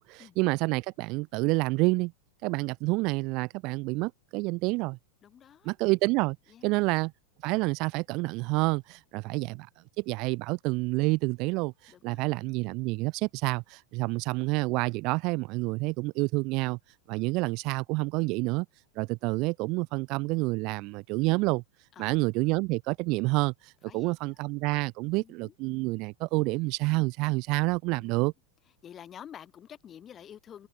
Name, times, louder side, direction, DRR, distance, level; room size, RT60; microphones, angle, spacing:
voice 1, 0.0-2.1 2.4-5.0 5.7-6.4 6.6-7.1 7.4-9.7 10.0-16.8 17.1-18.7 19.0-21.6 22.0-28.3, right 25 dB, 40° right, 0.4 m, -28 dB
voice 2, 5.2-5.7 6.5-6.8 9.3-9.5 11.9-12.5 17.3-17.4 21.9-22.2 23.9-24.5 25.1-25.5 28.0-28.3 28.8-30.7, left 9 dB, 25° left, 2.7 m, -50 dB
figure-of-eight pair, 90°, 0 cm